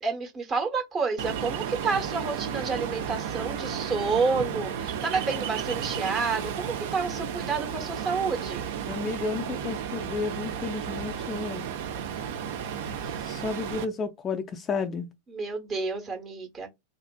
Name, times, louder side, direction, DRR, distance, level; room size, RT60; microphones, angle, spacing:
voice 1, 0.0-8.6 15.3-16.7, right 4 dB, 25° right, 0.9 m, -29 dB
Ocean, 1.2-13.8, right 8 dB, 55° right, 0.5 m, -33 dB
voice 2, 8.9-11.7 13.2-15.1, left 4 dB, 25° left, 0.3 m, -32 dB
2.6 x 2.4 x 2.2 m
figure-of-eight pair, 90°, 0 cm